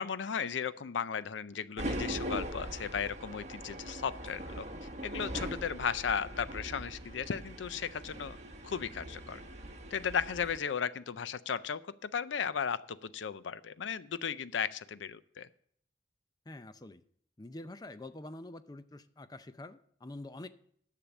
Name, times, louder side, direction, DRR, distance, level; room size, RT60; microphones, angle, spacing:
voice 1, 0.0-4.7 5.0-8.4 8.6-9.4 9.9-15.5, left 7 dB, 85° left, 16 dB, 0.5 m, -35 dB
sound 1, 1.8-10.6, right 1 dB, 40° right, 1.2 m, -41 dB
voice 2, 16.5-17.0 17.4-20.5, left 2 dB, 20° left, 12 dB, 0.5 m, -46 dB
10.0 x 6.8 x 7.0 m, 0.65 s
head